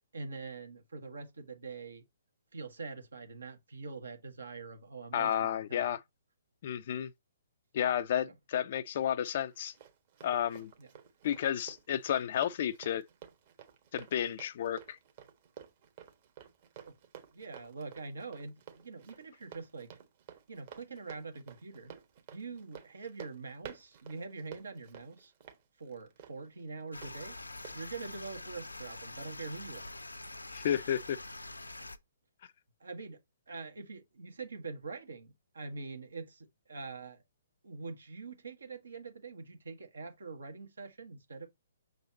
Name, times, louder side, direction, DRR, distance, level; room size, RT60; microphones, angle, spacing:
voice 1, 0.1-2.0 2.5-5.9 10.8-10.9 16.8-16.9 17.3-20.0 20.5-21.9 22.3-25.3 25.8-27.4 27.7-29.9 32.8-33.2 33.5-37.2 37.6-41.5, right 4 dB, 75° right, 1.4 m, -44 dB
voice 2, 5.1-6.0 6.6-7.1 7.7-9.7 10.2-10.7 11.2-13.0 13.9-15.0 30.5-31.2, left 10 dB, 50° left, 0.4 m, -32 dB
Run, 9.3-27.1 27.6-27.8, right 9 dB, 45° right, 1.4 m, -53 dB
sound 1, 26.9-32.0, left 2 dB, 90° left, 0.6 m, -45 dB
6.1 x 4.0 x 4.0 m
figure-of-eight pair, 130°, 0 cm